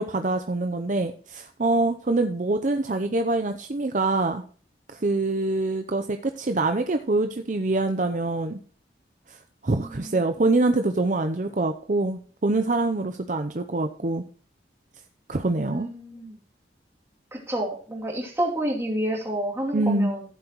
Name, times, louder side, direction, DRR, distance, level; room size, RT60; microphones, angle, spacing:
voice 1, 0.0-4.4 4.9-8.6 9.3-9.4 9.6-14.2 15.3-15.9 19.7-20.1, right 2 dB, 45° right, 7 dB, 0.6 m, -25 dB
voice 2, 15.7-16.3 17.3-20.2, right 1 dB, 15° right, -1 dB, 2.7 m, -29 dB
14.5 x 7.9 x 3.0 m, 0.43 s
head